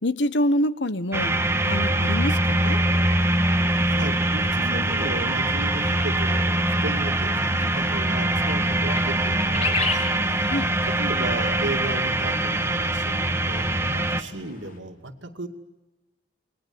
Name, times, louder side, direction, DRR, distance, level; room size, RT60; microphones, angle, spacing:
voice 1, 0.0-1.4 1.6-2.8 10.4-10.7, left 1 dB, 70° left, 14 dB, 1.3 m, -25 dB
sound 1, 1.1-14.2, right 1 dB, 15° right, 1.4 m, -23 dB
voice 2, 3.8-15.5, right 2 dB, 80° right, 6 dB, 2.6 m, -35 dB
sound 2, 4.7-14.8, left 1 dB, 50° left, 5.8 m, -50 dB
sound 3, 7.0-7.1 7.5-7.7 8.4-8.6 8.9-10.1 10.5-10.6, left 4 dB, 35° left, 3.9 m, -28 dB
29.0 x 21.0 x 9.8 m, 1.1 s
head